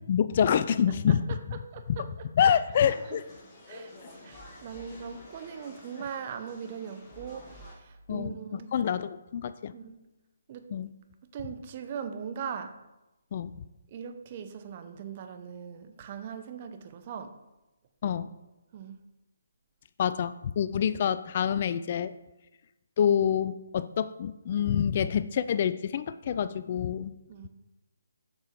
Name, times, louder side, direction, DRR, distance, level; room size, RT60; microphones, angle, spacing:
voice 1, 0.1-1.2 2.4-3.2 8.1-8.4 8.7-9.7 10.7-10.9 13.3-13.5 18.0-18.3 20.0-22.1 23.0-27.1, left 8 dB, 40° left, 13 dB, 0.3 m, -26 dB
voice 2, 0.9-1.4 1.7-2.6 3.0-3.2 3.7-3.9 4.2-8.7 9.7-10.0 10.5-10.7 11.3-12.8 13.9-17.4 18.7-19.0 27.3-27.5, right 7 dB, 35° right, 8 dB, 0.7 m, -40 dB
sound 1, 2.7-7.7, left 1 dB, 25° left, 1.6 m, -49 dB
7.1 x 6.6 x 3.6 m, 1.0 s
figure-of-eight pair, 145°, 0 cm